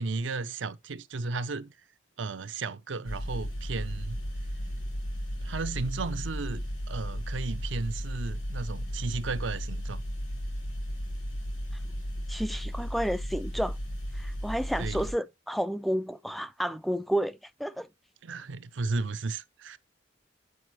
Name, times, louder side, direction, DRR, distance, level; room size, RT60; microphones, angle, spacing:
voice 1, 0.0-1.7 2.2-4.2 5.4-10.0 14.8-15.0 18.2-19.8, right 3 dB, 70° right, 0.6 m, -34 dB
sound 1, 3.0-15.1, equal, 75° left, 5.4 m, -35 dB
voice 2, 12.3-13.8 14.1-17.9, equal, ahead, 0.3 m, -31 dB
7.8 x 5.1 x 3.0 m
head